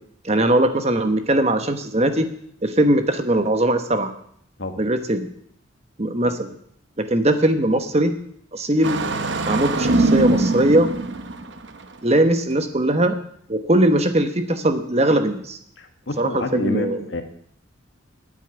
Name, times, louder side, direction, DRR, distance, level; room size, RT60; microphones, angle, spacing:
voice 1, 0.2-2.3 2.6-4.1 4.8-5.3 6.0-6.5 7.0-8.1 8.5-9.0 9.5-10.9 12.0-13.2 13.5-15.6 16.2-17.2, right 1 dB, 30° right, 8 dB, 1.1 m, -20 dB
Engine starting, 8.8-11.8, right 2 dB, 60° right, 1.0 m, -22 dB
voice 2, 15.8-17.2, left 2 dB, 60° left, 7 dB, 1.4 m, -28 dB
9.3 x 8.9 x 8.9 m, 0.66 s
head